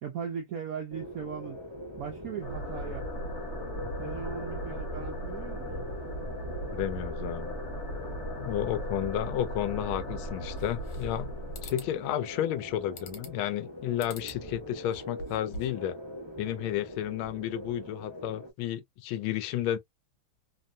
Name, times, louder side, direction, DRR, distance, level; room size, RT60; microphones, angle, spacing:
voice 1, 0.0-1.6 2.0-3.1 4.0-5.7, right 7 dB, 70° right, 0.8 m, -38 dB
sound 1, 0.9-18.5, equal, 40° right, 0.3 m, -43 dB
sound 2, 2.4-13.0, equal, 45° left, 1.1 m, -38 dB
voice 2, 6.7-7.5 8.4-11.3 11.6-16.0 16.4-19.8, left 12 dB, 85° left, 1.4 m, -32 dB
sound 3, 10.6-11.2 11.5-11.9 13.0-13.5 14.0-14.4 14.8-15.8, left 1 dB, 70° left, 1.6 m, -44 dB
3.4 x 2.2 x 2.4 m
omnidirectional pair, 2.2 m